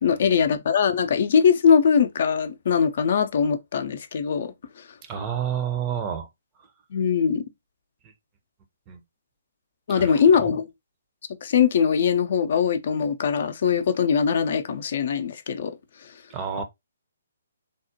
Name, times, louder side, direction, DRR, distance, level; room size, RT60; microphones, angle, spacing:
voice 1, 0.0-4.5 6.9-7.4 9.9-10.7 11.4-15.7, left 7 dB, 50° left, 0.4 m, -21 dB
voice 2, 5.1-6.3 8.9-9.0 9.9-10.5 16.3-16.6, right 8 dB, 25° right, 0.5 m, -29 dB
3.5 x 2.1 x 2.6 m
figure-of-eight pair, 135°, 0 cm